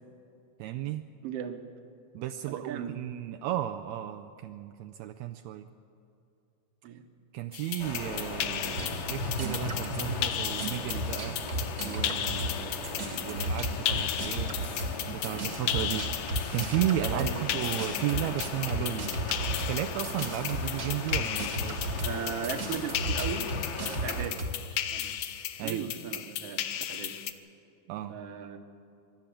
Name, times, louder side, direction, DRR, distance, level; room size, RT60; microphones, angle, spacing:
voice 1, 0.6-1.0 2.1-5.7 7.3-11.4 11.8-14.6 15.1-16.1 16.5-19.1 19.7-21.9 25.6-25.9 27.9-28.2, right 12 dB, 80° right, 6 dB, 1.6 m, -34 dB
voice 2, 1.2-1.6 2.5-3.0 6.8-7.0 17.1-17.6 22.0-23.5 23.8-25.2 25.6-27.2 28.1-28.6, right 8 dB, 60° right, 7 dB, 1.9 m, -37 dB
sound 1, 7.5-27.3, left 11 dB, 70° left, 1.8 m, -35 dB
sound 2, 7.8-24.3, left 3 dB, 90° left, 3.5 m, -39 dB
sound 3, 8.7-12.6 12.8-24.6, right 1 dB, 35° right, 1.6 m, -34 dB
25.5 x 12.0 x 8.4 m, 2.6 s
omnidirectional pair, 3.7 m